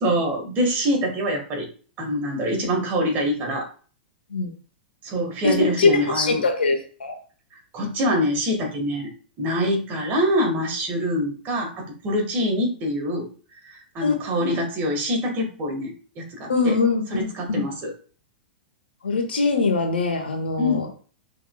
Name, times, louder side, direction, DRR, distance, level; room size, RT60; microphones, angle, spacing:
voice 1, 0.0-1.7 2.0-3.7 5.0-6.4 7.7-9.1 9.4-13.3 13.6-16.8 17.1-17.9 20.6-20.9, equal, 35° right, 2 dB, 1.7 m, -25 dB
voice 2, 5.4-7.2 14.0-14.1 14.4-14.6 16.5-17.6 19.0-20.9, left 4 dB, 75° left, 4 dB, 1.1 m, -22 dB
5.5 x 3.4 x 2.4 m, 0.39 s
figure-of-eight pair, 100°, 5 cm